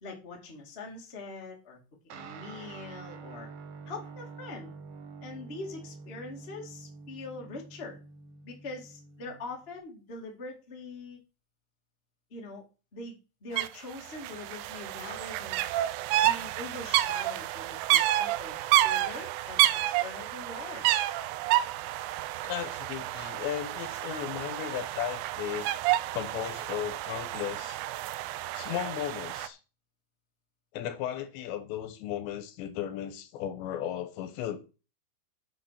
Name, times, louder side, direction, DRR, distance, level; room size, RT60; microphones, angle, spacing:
voice 1, 0.0-1.8 2.0-3.5 3.8-4.7 5.2-8.0 8.4-11.2 12.3-12.6 12.9-13.1 13.4-15.6 16.2-18.5 18.8-21.2, left 3 dB, 35° left, 0.9 m, -43 dB
Guitar, 2.1-9.8, right 4 dB, 70° right, 2.1 m, -47 dB
sound 1, 13.6-13.7 13.9-29.5, right 14 dB, 85° right, 3.1 m, -29 dB
voice 2, 22.4-25.8 26.1-27.8 28.5-29.6 30.7-34.6, left 11 dB, 75° left, 3.0 m, -35 dB
10.0 x 6.1 x 5.8 m
omnidirectional pair, 5.6 m